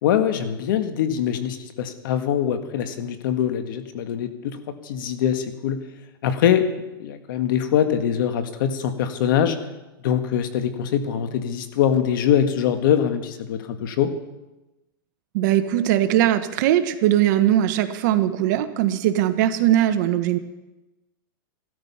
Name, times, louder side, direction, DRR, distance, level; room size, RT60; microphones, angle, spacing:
voice 1, 0.0-5.8 6.2-6.7 7.0-9.6 10.0-14.1, left 9 dB, 65° left, 9 dB, 1.7 m, -23 dB
voice 2, 15.3-20.4, right 12 dB, 55° right, 10 dB, 1.2 m, -20 dB
16.0 x 13.0 x 5.7 m, 1.0 s
supercardioid pair, 145°, 12 cm